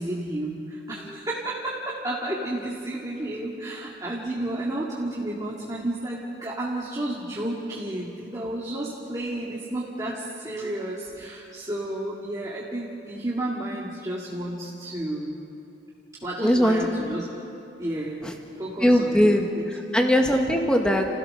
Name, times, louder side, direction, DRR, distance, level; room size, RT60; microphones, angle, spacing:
voice 1, 0.0-15.4 16.2-17.3 17.8-19.6, right 1 dB, 20° right, -5 dB, 2.2 m, -32 dB
voice 2, 16.4-16.9 18.2-18.3 18.8-19.4 19.7-21.1, equal, 5° left, 2 dB, 1.8 m, -20 dB
30.0 x 16.0 x 6.7 m, 2.7 s
head